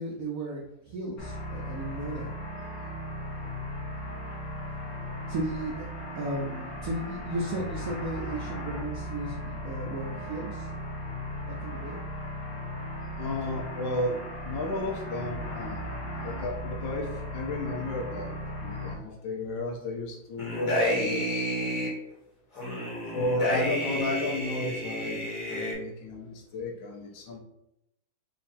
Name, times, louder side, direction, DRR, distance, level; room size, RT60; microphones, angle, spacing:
voice 1, 0.0-2.3 5.3-5.9 6.1-10.7 11.5-12.0 22.6-23.0, right 1 dB, 75° right, -2 dB, 0.7 m, -35 dB
sound 1, 1.2-19.0, equal, 50° left, 1.4 m, -37 dB
voice 2, 13.2-14.2 14.4-15.9 16.2-17.1 17.3-21.5 23.1-27.4, left 2 dB, 70° left, -1 dB, 1.6 m, -33 dB
sound 2, 20.4-21.9 22.6-25.7, equal, 15° left, 1.1 m, -30 dB
4.2 x 2.5 x 4.1 m, 0.82 s
omnidirectional pair, 2.2 m